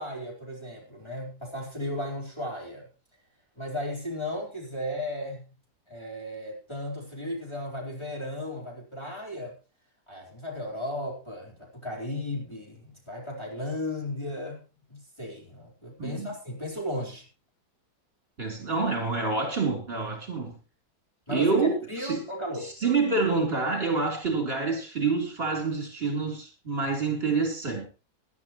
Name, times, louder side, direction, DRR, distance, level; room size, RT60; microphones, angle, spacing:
voice 1, 0.0-2.9 3.6-5.5 5.9-9.6 10.1-14.6 14.9-17.3 21.3-22.7, left 1 dB, 15° left, 4.4 m, -35 dB
voice 2, 16.0-16.3 18.4-20.6 21.3-22.2 22.6-27.9, right 4 dB, 35° right, 4.3 m, -27 dB
20.0 x 12.0 x 3.1 m
omnidirectional pair, 1.7 m